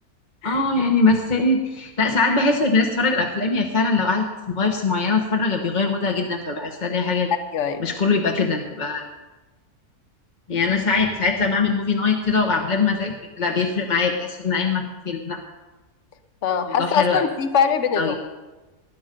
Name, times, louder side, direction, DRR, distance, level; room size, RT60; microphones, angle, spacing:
voice 1, 0.4-7.3 7.8-9.1 10.5-15.4 16.7-17.2 18.0-18.2, left 4 dB, 35° left, 2 dB, 1.1 m, -22 dB
voice 2, 16.4-18.2, left 7 dB, 55° left, 9 dB, 1.3 m, -22 dB
19.5 x 10.5 x 5.2 m, 1.2 s
omnidirectional pair, 1.6 m